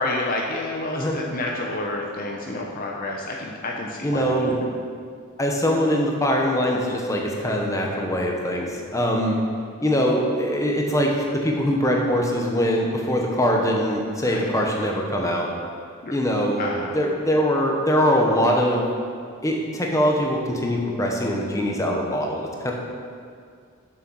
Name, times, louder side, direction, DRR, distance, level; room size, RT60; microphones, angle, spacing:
voice 1, 0.0-4.6 14.3-14.5 16.0-16.1 16.6-16.9, left 2 dB, 40° left, -1 dB, 0.7 m, -29 dB
voice 2, 4.0-4.6 5.4-9.4 9.8-15.5 16.1-18.9 19.4-22.7, equal, 15° left, 0 dB, 1.0 m, -22 dB
7.7 x 6.6 x 6.2 m, 2.2 s
head